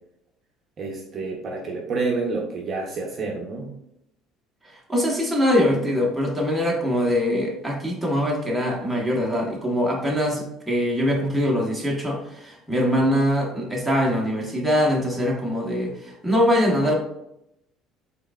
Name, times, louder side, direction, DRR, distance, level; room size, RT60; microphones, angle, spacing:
voice 1, 0.8-3.7, right 3 dB, 30° right, 0 dB, 0.6 m, -28 dB
voice 2, 4.6-16.9, equal, ahead, -3 dB, 0.8 m, -23 dB
4.4 x 3.4 x 2.2 m, 0.81 s
cardioid pair, 160°, 0 cm